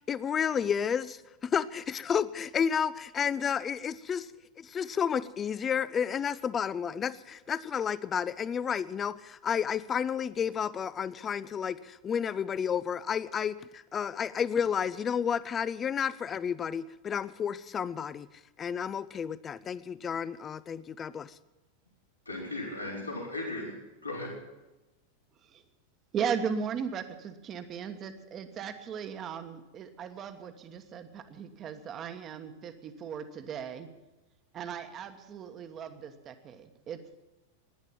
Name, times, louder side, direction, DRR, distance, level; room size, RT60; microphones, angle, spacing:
voice 1, 0.0-4.3 4.6-18.3 18.6-21.3, left 7 dB, 25° left, 18 dB, 0.5 m, -31 dB
voice 2, 22.3-23.8 24.0-24.4, left 2 dB, 85° left, -3 dB, 4.2 m, -36 dB
voice 3, 26.1-33.9 34.5-37.0, right 7 dB, 30° right, 9 dB, 1.3 m, -37 dB
17.5 x 10.5 x 7.4 m, 1.1 s
figure-of-eight pair, 90°, 0 cm